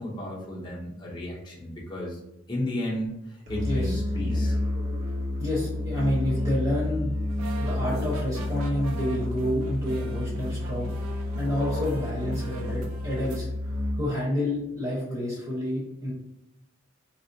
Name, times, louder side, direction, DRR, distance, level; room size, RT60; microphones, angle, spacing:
voice 1, 0.0-2.2 2.5-4.6, left 1 dB, 20° left, -4 dB, 0.7 m, -33 dB
Musical instrument, 3.5-14.3, left 1 dB, 60° right, 0.7 m, -30 dB
voice 2, 3.6-4.0 5.4-7.2 7.6-10.9 11.4-13.5 13.9-16.1, left 1 dB, 30° right, -8 dB, 1.0 m, -29 dB
sound 1, 7.3-13.4, right 3 dB, 85° right, 0.4 m, -43 dB
4.2 x 2.0 x 2.7 m, 0.86 s
head